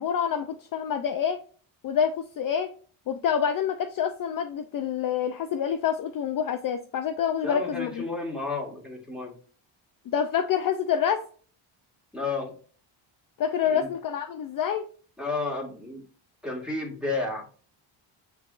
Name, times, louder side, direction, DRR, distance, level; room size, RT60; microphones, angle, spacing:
voice 1, 0.0-1.4 1.8-2.7 3.1-8.1 10.1-11.3 13.4-14.9, left 8 dB, 45° left, 8 dB, 0.4 m, -27 dB
voice 2, 7.4-9.3 12.1-12.5 13.6-13.9 15.2-16.0 16.4-17.5, left 3 dB, ahead, -1 dB, 1.7 m, -32 dB
5.7 x 3.5 x 2.4 m, 0.42 s
cardioid pair, 105°, 49 cm